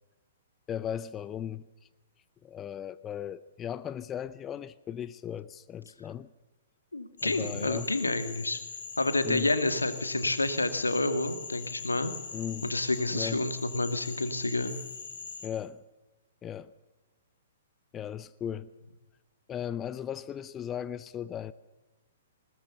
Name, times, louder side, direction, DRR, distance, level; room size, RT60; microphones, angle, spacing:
voice 1, 0.7-1.6 2.4-6.3 7.2-7.9 9.2-9.5 12.3-12.7 13.1-13.5 15.4-15.8 16.4-16.7 17.9-18.7 19.5-21.5, left 9 dB, 20° left, 0.6 m, -37 dB
voice 2, 6.9-8.6 9.0-12.1 12.6-14.8, left 2 dB, 85° left, 2.0 m, -29 dB
Frog, 7.2-15.5, left 5 dB, 65° left, 5.7 m, -42 dB
20.5 x 20.5 x 6.9 m
figure-of-eight pair, 115°, 0 cm